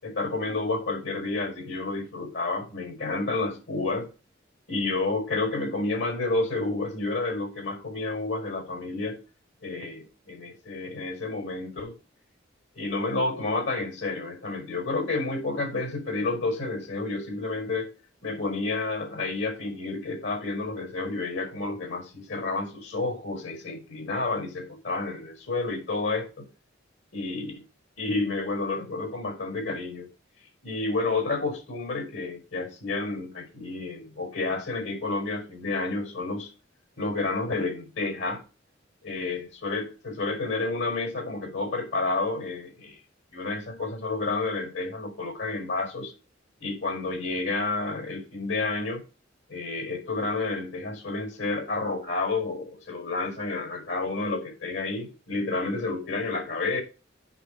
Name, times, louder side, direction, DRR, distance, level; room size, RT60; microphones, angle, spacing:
voice 1, 0.0-4.1 4.7-9.2 9.6-11.9 12.7-17.9 18.2-26.5 27.1-27.5 28.0-30.1 30.6-36.5 37.0-38.4 39.0-43.0 43.3-46.1 46.6-49.0 49.5-56.8, left 3 dB, 80° left, 5.2 m, -30 dB
8.3 x 6.0 x 7.0 m
head